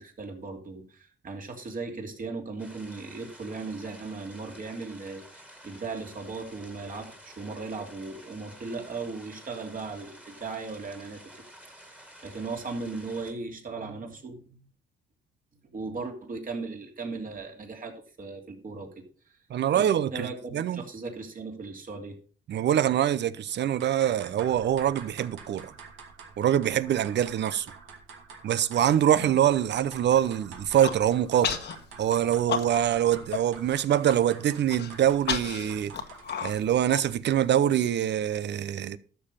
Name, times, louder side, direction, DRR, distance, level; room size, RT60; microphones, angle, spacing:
voice 1, 0.0-11.2 11.7-11.8 12.2-14.6 15.6-19.4 19.7-19.9 20.1-22.2 29.1-29.3, right 4 dB, 45° right, 3.1 m, -37 dB
sound 1, 2.6-13.3, equal, 5° right, 2.1 m, -51 dB
voice 2, 19.5-20.3 20.5-20.8 22.5-25.7 26.4-27.7 28.4-31.6 32.0-35.9 36.4-39.0, right 10 dB, 60° right, 0.7 m, -24 dB
sound 2, 23.6-36.8, right 5 dB, 80° right, 2.6 m, -48 dB
Human voice, 30.6-31.0 31.4-31.7 32.1-33.0 33.3-33.4 33.8-34.1 34.7-37.5, left 7 dB, 60° left, 1.4 m, -32 dB
12.5 x 6.9 x 5.5 m
cardioid pair, 90°, 20 cm